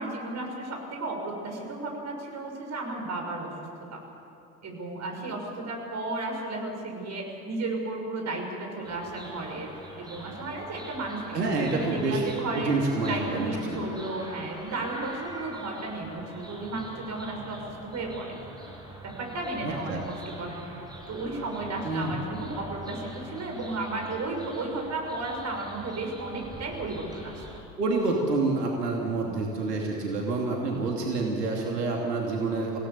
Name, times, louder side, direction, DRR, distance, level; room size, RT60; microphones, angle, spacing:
voice 1, 0.0-3.5 3.9-4.0 4.6-11.4 11.7-12.7 13.1-18.3 19.0-20.6 21.1-27.4, right 2 dB, 35° right, 2 dB, 6.2 m, -34 dB
sound 1, 8.8-27.6, right 1 dB, 10° right, 6.6 m, -44 dB
voice 2, 11.3-13.8 19.6-20.0 21.8-22.1 27.8-32.8, right 3 dB, 80° right, -1 dB, 2.9 m, -28 dB
27.0 x 17.5 x 7.1 m, 2.7 s
figure-of-eight pair, 75°, 47 cm